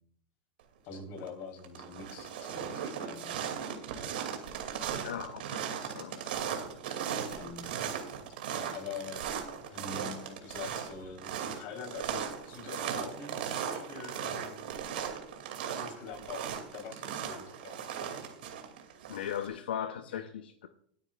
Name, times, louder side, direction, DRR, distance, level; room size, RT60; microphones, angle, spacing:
voice 1, 0.8-3.6 7.3-7.8 8.7-14.9 15.8-18.2 20.1-20.2, left 5 dB, 50° left, 4.0 m, -45 dB
sound 1, 0.9-1.3 1.6-19.5, right 8 dB, 80° right, 2.5 m, -37 dB
voice 2, 5.0-6.4 19.1-20.7, left 9 dB, 90° left, 0.7 m, -38 dB
27.0 x 9.4 x 2.4 m
supercardioid pair, 125°, 5 cm